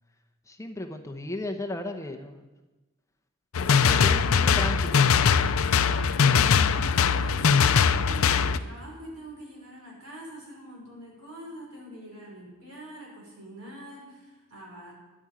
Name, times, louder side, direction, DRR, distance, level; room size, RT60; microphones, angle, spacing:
voice 1, 0.5-2.5 3.5-5.1, left 1 dB, 15° left, 4 dB, 0.9 m, -35 dB
sound 1, 3.5-8.6, left 6 dB, 65° left, 0.5 m, -21 dB
voice 2, 5.8-14.9, equal, 85° right, -3 dB, 5.8 m, -44 dB
11.0 x 8.8 x 8.9 m, 1.2 s
head